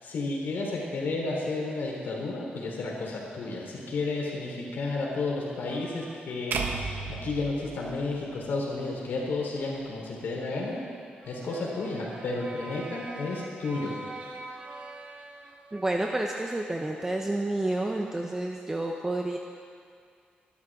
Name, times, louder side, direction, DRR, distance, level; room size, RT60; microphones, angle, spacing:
voice 1, 0.0-6.6 7.1-10.9 11.2-13.9, left 3 dB, 80° left, -3 dB, 3.9 m, -32 dB
sound 1, 5.6-6.7 7.5-8.0 8.8-9.5 11.2-16.2, right 2 dB, 40° right, 1.3 m, -45 dB
sound 2, 6.5-8.8, right 4 dB, 75° right, 1.3 m, -34 dB
voice 2, 15.7-19.4, right 2 dB, 15° right, 1 dB, 0.8 m, -29 dB
23.5 x 12.5 x 3.7 m, 2.2 s
wide cardioid pair, 150°, 3 cm